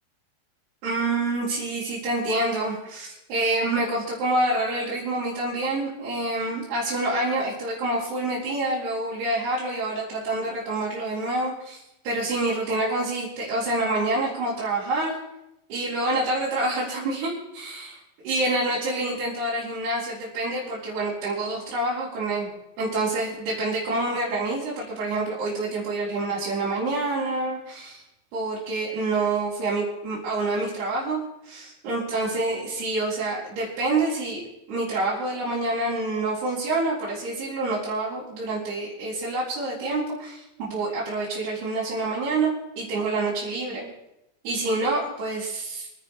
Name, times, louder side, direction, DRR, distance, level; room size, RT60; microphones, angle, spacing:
voice 1, 0.8-11.8 12.0-15.2 15.7-18.0 18.2-22.5 22.8-28.0 28.3-31.2 31.5-34.4 34.7-43.9 44.4-45.9, right 2 dB, 65° right, -9 dB, 6.0 m, -27 dB
28.5 x 10.0 x 3.4 m, 0.86 s
omnidirectional pair, 4.9 m